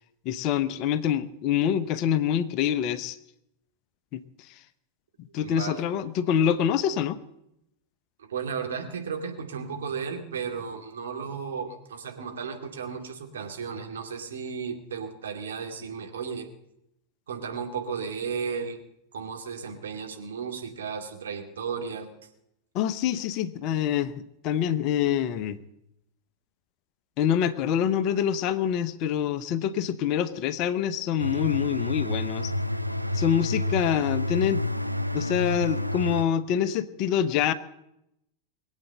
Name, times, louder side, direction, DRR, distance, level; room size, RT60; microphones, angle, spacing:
voice 1, 0.2-3.2 4.1-4.2 5.2-7.2 22.7-24.1 24.4-25.6 27.2-32.5 33.1-34.6 35.1-37.5, left 9 dB, 40° left, 13 dB, 0.9 m, -26 dB
voice 2, 5.4-5.8 8.3-16.5 17.3-18.8 19.1-22.1, right 6 dB, 65° right, 3 dB, 2.5 m, -34 dB
sound 1, 31.2-36.2, left 1 dB, 90° right, 0.6 m, -29 dB
21.5 x 8.4 x 7.7 m, 0.81 s
figure-of-eight pair, 90°, 0 cm